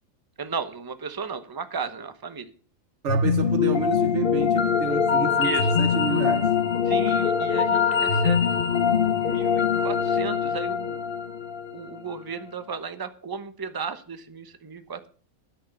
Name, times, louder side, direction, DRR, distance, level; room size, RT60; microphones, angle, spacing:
voice 1, 0.4-2.5 5.4-5.7 6.8-11.0 11.7-15.1, right 5 dB, 20° right, 0.9 m, -35 dB
voice 2, 3.0-6.5, right 7 dB, 60° right, 1.0 m, -30 dB
sound 1, 3.1-12.2, left 6 dB, 45° left, 1.1 m, -23 dB
11.0 x 6.5 x 7.6 m
omnidirectional pair, 1.4 m